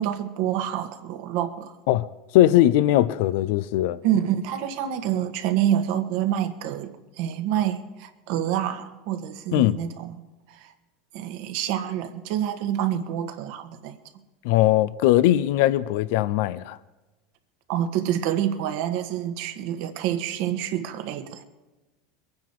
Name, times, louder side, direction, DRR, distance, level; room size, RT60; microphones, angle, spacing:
voice 1, 0.0-1.8 4.0-10.2 10.5-10.7 11.1-14.0 17.7-21.4, right 10 dB, 65° right, 1.6 m, -27 dB
voice 2, 2.3-4.0 9.5-9.8 14.4-16.8, left 14 dB, 70° left, 0.6 m, -20 dB
22.5 x 9.5 x 4.8 m
hypercardioid pair, 100°, 0 cm